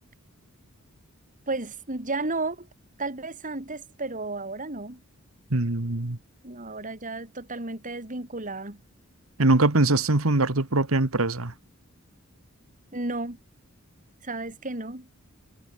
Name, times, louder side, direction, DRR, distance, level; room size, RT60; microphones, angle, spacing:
voice 1, 1.5-2.7 3.0-5.0 6.4-8.8 12.9-13.4 14.2-15.1, right 2 dB, 40° right, 4.4 m, -33 dB
voice 2, 5.5-6.2 9.4-11.5, right 2 dB, 75° right, 1.8 m, -22 dB
head